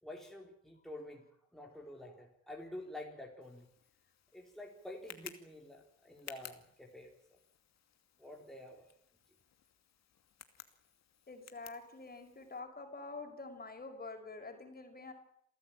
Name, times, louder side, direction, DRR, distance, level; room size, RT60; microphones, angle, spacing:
voice 1, 0.0-3.7 4.3-7.4 8.2-8.9, left 1 dB, ahead, 0 dB, 4.2 m, -49 dB
Tick, 3.4-12.6, left 9 dB, 60° left, 2.5 m, -56 dB
voice 2, 11.3-15.1, left 3 dB, 30° left, 5 dB, 5.8 m, -47 dB
28.0 x 14.5 x 9.0 m, 0.70 s
cardioid pair, 90°, 30 cm